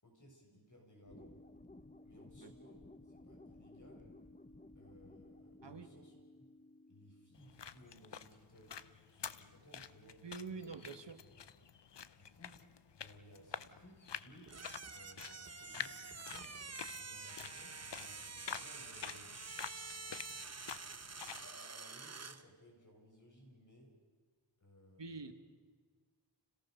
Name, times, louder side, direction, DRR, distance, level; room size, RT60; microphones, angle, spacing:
voice 1, 0.0-1.4 2.0-4.1 4.8-6.1 6.4-6.5 6.9-8.8 9.1-10.7 12.2-12.6 12.9-14.6 14.9-16.5 17.0-19.3 21.4-23.9 24.6-25.3, equal, 45° left, -1 dB, 7.0 m, -61 dB
sound 1, 1.1-7.6, left 2 dB, 15° left, 1.1 m, -57 dB
sound 2, 7.3-21.5, left 8 dB, 70° left, 0.8 m, -49 dB
voice 2, 10.2-11.2 25.0-25.3, right 4 dB, 75° right, 9 dB, 1.5 m, -46 dB
sound 3, 14.5-22.4, right 4 dB, 35° right, 0.9 m, -48 dB
29.5 x 18.0 x 6.7 m, 1.5 s
wide cardioid pair, 65°, 43 cm